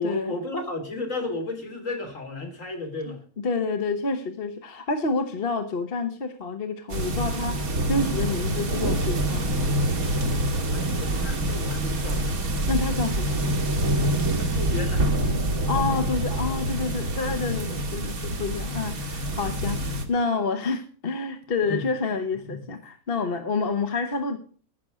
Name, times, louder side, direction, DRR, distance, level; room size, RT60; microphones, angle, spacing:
voice 1, 0.0-3.2 10.7-12.3 14.4-15.1 21.7-21.9 22.5-22.6, left 2 dB, 60° left, 2 dB, 3.3 m, -33 dB
voice 2, 3.1-9.5 12.7-13.4 15.7-24.4, left 4 dB, 45° left, 7 dB, 1.1 m, -28 dB
sound 1, 6.9-20.0, right 1 dB, 75° right, 2.0 m, -26 dB
15.0 x 6.1 x 6.2 m, 0.42 s
omnidirectional pair, 1.5 m